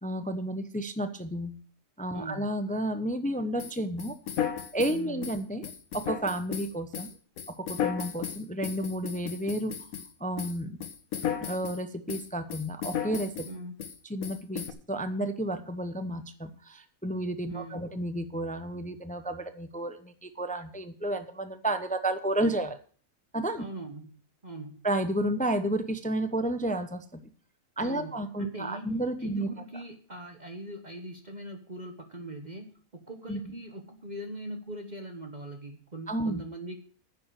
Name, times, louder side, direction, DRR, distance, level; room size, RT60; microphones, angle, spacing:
voice 1, 0.0-1.5 2.0-4.2 4.7-7.1 7.5-9.9 10.2-10.8 11.4-13.5 14.1-22.8 23.3-23.6 24.8-27.2 27.8-29.5 33.3-33.5 36.1-36.4, right 1 dB, 10° left, 9 dB, 0.6 m, -31 dB
voice 2, 2.1-2.5 4.9-5.3 13.4-13.7 17.5-17.9 23.6-24.2 24.4-24.8 27.8-28.9 29.2-32.6 32.9-36.8, right 1 dB, 35° right, 4 dB, 1.3 m, -41 dB
sound 1, 3.6-10.1 10.4-11.8 12.1-13.5 13.8-14.0 14.2-14.7, left 8 dB, 90° left, 1.5 m, -35 dB
10.0 x 6.9 x 7.7 m, 0.44 s
omnidirectional pair, 1.4 m